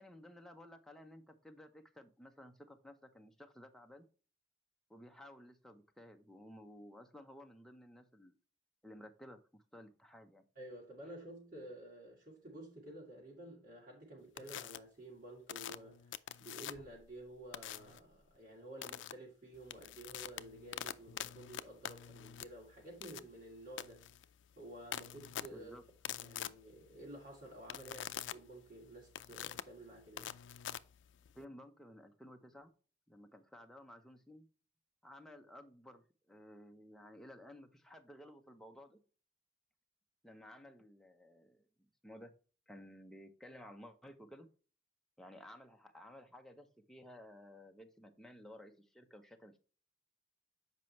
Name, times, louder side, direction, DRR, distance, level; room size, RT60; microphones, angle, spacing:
voice 1, 0.0-4.1 4.9-8.4 8.8-10.4 25.5-25.8 31.3-32.7 33.1-34.5 35.0-39.0 40.2-41.7 42.0-42.3 42.7-44.5 45.2-49.6, left 1 dB, ahead, 0.8 m, -55 dB
voice 2, 10.6-16.1 16.4-24.0 24.6-25.7 26.2-30.3, right 1 dB, 50° right, 2.3 m, -52 dB
sound 1, 14.4-14.8 15.5-17.0 17.5-18.0 18.8-19.1 19.5-31.4, left 10 dB, 90° left, 0.4 m, -45 dB
7.4 x 5.3 x 3.2 m
head